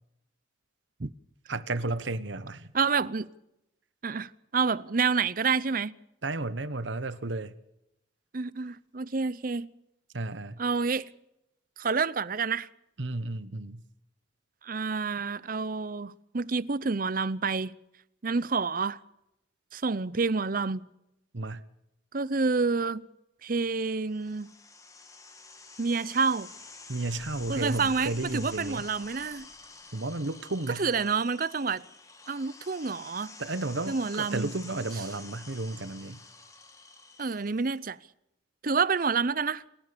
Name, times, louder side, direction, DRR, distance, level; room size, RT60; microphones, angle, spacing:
voice 1, 1.5-2.7 6.2-7.5 10.1-10.6 13.0-13.8 21.3-21.6 26.9-28.8 29.9-30.9 33.4-36.2, right 2 dB, 70° right, 1.2 m, -33 dB
voice 2, 2.7-3.3 4.0-6.0 8.3-9.7 10.6-11.1 11.8-12.7 14.6-17.7 18.2-19.0 19.7-20.9 22.1-23.1 23.4-24.5 25.8-26.5 27.5-29.5 30.7-31.8 32.3-33.4 33.9-34.5 37.2-38.0 38.6-39.6, right 4 dB, 45° right, 0.7 m, -28 dB
sound 1, 24.1-37.8, left 3 dB, 15° left, 2.2 m, -49 dB
sound 2, 26.9-30.2, left 1 dB, 50° left, 5.7 m, -55 dB
28.5 x 14.0 x 6.9 m
head